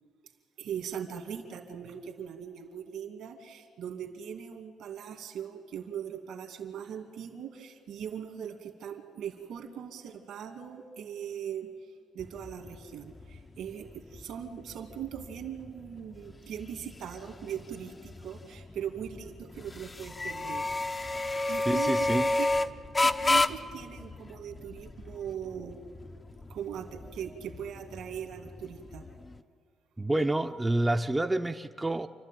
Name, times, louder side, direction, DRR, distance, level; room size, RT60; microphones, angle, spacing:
voice 1, 0.6-11.7 12.1-20.6 21.5-22.5 23.0-25.8 26.5-29.0, right 8 dB, 80° right, 6 dB, 2.3 m, -40 dB
sound 1, 12.2-29.4, left 2 dB, 25° left, 0.7 m, -33 dB
voice 2, 21.7-22.2 30.0-32.1, right 1 dB, 10° right, 5 dB, 0.7 m, -28 dB
29.0 x 12.5 x 9.3 m, 2.1 s
cardioid pair, 90°, 0 cm